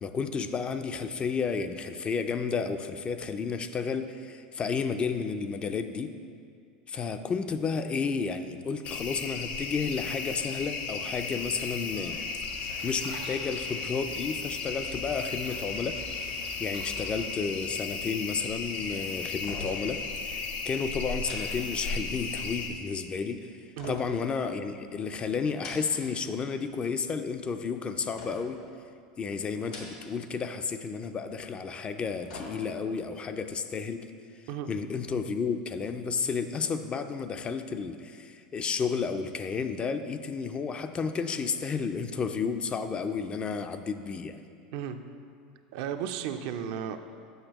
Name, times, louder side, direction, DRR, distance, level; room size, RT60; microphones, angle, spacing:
voice 1, 0.0-6.1 6.9-12.2 12.6-16.0 16.6-28.6 29.2-34.1 34.7-44.4, left 5 dB, 25° left, 8 dB, 0.4 m, -32 dB
sound 1, 8.8-22.7, left 4 dB, 50° left, 0.7 m, -35 dB
sound 2, 12.4-17.4, right 3 dB, 90° right, 1.3 m, -47 dB
sound 3, 19.3-19.9 20.2-20.3 21.2-22.3 23.8-24.9 25.4-26.2 26.5-27.1 28.2-28.7 29.5-30.3 30.6-30.7 31.8-33.0 33.4-33.5, left 2 dB, 80° left, 1.3 m, -46 dB
voice 2, 45.7-47.0, right 9 dB, 65° right, 8 dB, 0.4 m, -34 dB
7.9 x 6.1 x 3.0 m, 2.3 s
hypercardioid pair, 100°, 4 cm